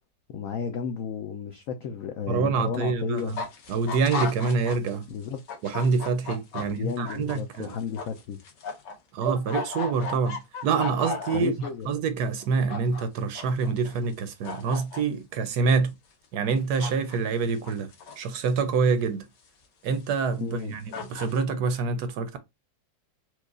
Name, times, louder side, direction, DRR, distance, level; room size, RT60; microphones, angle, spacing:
voice 1, 0.3-3.3 5.1-5.4 6.6-8.4 11.3-11.9 20.4-20.7, left 7 dB, 90° left, 0.7 m, -33 dB
voice 2, 2.3-3.4 3.7-5.1 5.6-7.8 9.1-11.5 11.9-15.9 16.3-17.9 18.2-19.3 19.8-22.4, right 5 dB, 70° right, 1.0 m, -26 dB
sound 1, 3.2-5.0 5.2-8.9 9.2-11.7 12.4-13.0 13.4-14.1 14.4-15.0 16.8-17.2 17.4-18.4 18.9-19.0 19.9-20.0 20.6-20.7 20.9-21.4, left 4 dB, 70° left, 1.6 m, -35 dB
4.5 x 2.4 x 2.3 m
omnidirectional pair, 2.0 m